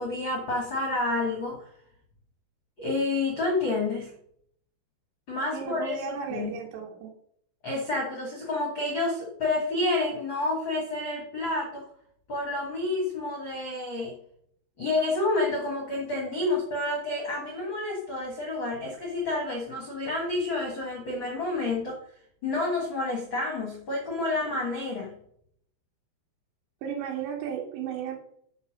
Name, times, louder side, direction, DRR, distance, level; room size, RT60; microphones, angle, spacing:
voice 1, 0.0-1.6 2.8-4.1 5.3-6.0 6.3-6.5 7.6-11.8 12.3-14.1 14.8-22.0 22.4-25.2, left 2 dB, 65° left, -1 dB, 1.2 m, -29 dB
voice 2, 5.5-7.1 26.8-28.2, right 7 dB, 85° right, -2 dB, 3.4 m, -34 dB
8.8 x 5.8 x 5.1 m, 0.69 s
omnidirectional pair, 4.9 m